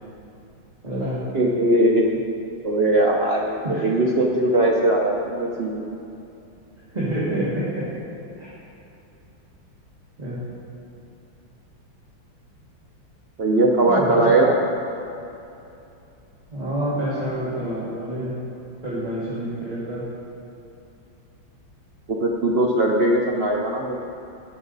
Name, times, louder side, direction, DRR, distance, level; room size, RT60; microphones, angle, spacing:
voice 1, 0.8-1.2 3.6-3.8 6.9-7.9 8.4-8.5 10.2-10.4 13.8-14.2 14.5-14.6 16.5-18.4 18.8-20.1, right 1 dB, 20° right, -11 dB, 2.1 m, -27 dB
voice 2, 1.3-2.0 2.6-5.8 13.4-14.5 22.1-24.0, right 1 dB, 80° right, -1 dB, 0.5 m, -20 dB
18.5 x 6.2 x 4.0 m, 2.8 s
omnidirectional pair, 2.3 m